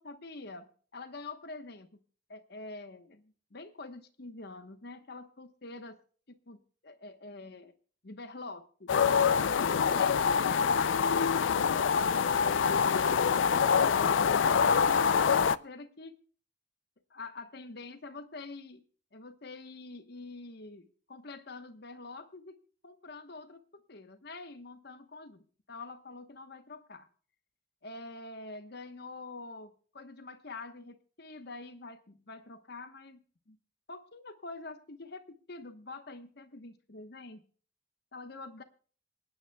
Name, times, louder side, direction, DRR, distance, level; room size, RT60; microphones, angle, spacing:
voice 1, 0.0-2.0 2.3-6.0 6.3-7.7 8.0-8.9 9.4-16.2 17.1-18.8 19.1-22.6 22.8-27.1 27.8-33.6 33.9-37.5 38.1-38.6, left 3 dB, 60° left, 9 dB, 1.1 m, -46 dB
sound 1, 8.9-15.6, left 6 dB, 80° left, 0.4 m, -25 dB
27.0 x 9.5 x 2.3 m, 0.42 s
head